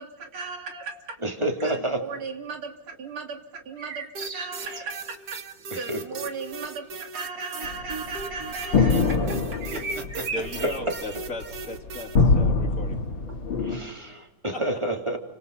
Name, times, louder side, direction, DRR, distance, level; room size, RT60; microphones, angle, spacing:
voice 1, 0.0-1.2 1.6-5.4 5.7-10.3, right 4 dB, 85° right, 4 dB, 3.7 m, -37 dB
voice 2, 1.2-2.0 4.7-4.8 5.7-6.0 10.6-10.7 13.6-15.2, right 1 dB, 15° right, 4 dB, 3.1 m, -29 dB
sound 1, 3.8-5.1 9.6-11.1, right 3 dB, 70° right, 3.7 m, -35 dB
sound 2, 4.1-12.2, right 4 dB, 50° right, 2.0 m, -38 dB
sound 3, 7.6-13.8, left 4 dB, 70° left, 3.0 m, -24 dB
voice 3, 10.3-13.0 14.5-14.6, left 2 dB, 40° left, 3 dB, 3.0 m, -36 dB
30.0 x 25.5 x 5.5 m, 1.0 s
omnidirectional pair, 2.3 m